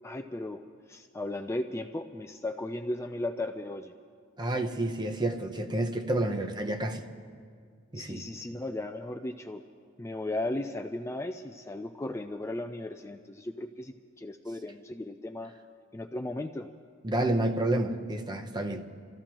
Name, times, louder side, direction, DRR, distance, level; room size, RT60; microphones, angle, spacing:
voice 1, 0.0-0.6 0.9-3.9 7.9-9.6 10.0-15.5 15.9-16.7, left 1 dB, 15° left, 6 dB, 0.4 m, -36 dB
voice 2, 4.4-7.0 7.9-8.2 17.0-18.8, right 1 dB, 20° right, 5 dB, 0.8 m, -29 dB
28.0 x 14.5 x 3.0 m, 2.1 s
head